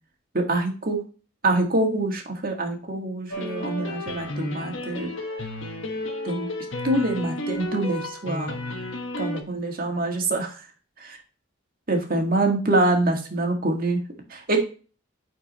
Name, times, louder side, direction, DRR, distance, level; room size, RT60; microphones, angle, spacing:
voice 1, 0.3-1.0 1.4-5.1 6.2-6.5 6.8-8.6 9.2-10.6 11.0-11.2 11.9-14.0 14.3-14.6, right 2 dB, 45° right, 2 dB, 1.7 m, -25 dB
sound 1, 3.3-9.4, left 1 dB, 75° left, 1.3 m, -32 dB
9.6 x 4.6 x 3.0 m, 0.36 s
head